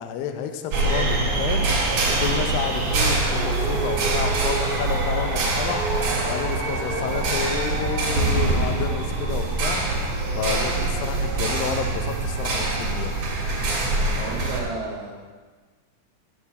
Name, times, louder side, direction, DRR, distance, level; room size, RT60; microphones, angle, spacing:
voice 1, 0.0-1.7 2.2-5.8 6.2-9.8 10.4-13.1, left 8 dB, 85° left, 7 dB, 2.0 m, -30 dB
sound 1, 0.7-14.6, right 2 dB, 55° right, 2.4 m, -24 dB
sound 2, 6.8-9.3 10.2-11.2, left 2 dB, 45° left, 2.3 m, -38 dB
voice 2, 14.2-15.1, right 4 dB, 85° right, -2 dB, 3.9 m, -32 dB
11.5 x 7.4 x 4.2 m, 1.4 s
omnidirectional pair, 5.0 m